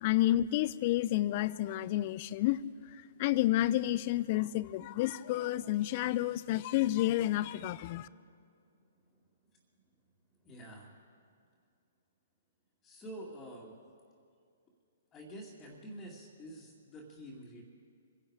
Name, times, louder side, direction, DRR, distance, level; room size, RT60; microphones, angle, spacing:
voice 1, 0.0-2.6 3.2-8.1, left 14 dB, 40° left, 0.5 m, -30 dB
voice 2, 10.4-10.9 12.8-13.8 15.1-17.6, right 1 dB, 20° left, 2.4 m, -47 dB
25.0 x 11.5 x 4.9 m
hypercardioid pair, 130°, 0 cm